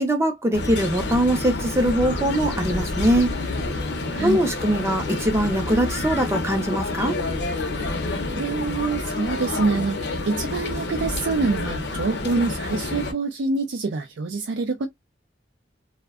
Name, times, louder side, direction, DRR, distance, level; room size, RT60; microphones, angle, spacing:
voice 1, 0.0-3.3 4.2-7.2, right 1 dB, 15° right, 0.4 m, -22 dB
sound 1, 0.5-13.1, left 2 dB, 65° left, 0.5 m, -28 dB
voice 2, 4.1-4.4 8.3-14.9, right 4 dB, 75° right, 0.4 m, -26 dB
2.6 x 2.1 x 2.3 m
head